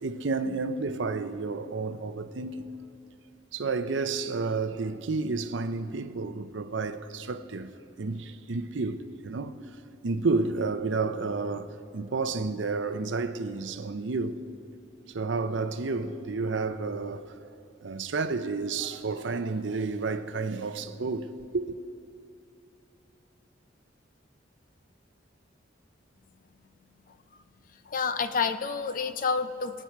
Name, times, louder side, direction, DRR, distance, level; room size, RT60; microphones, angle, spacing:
voice 1, 0.0-2.7 3.5-7.7 8.0-9.6 10.0-14.4 15.1-17.4 17.8-21.3 21.5-21.8, right 3 dB, 70° right, 0.7 m, -31 dB
voice 2, 27.9-29.8, left 5 dB, 45° left, 0.6 m, -29 dB
26.0 x 8.7 x 4.6 m
head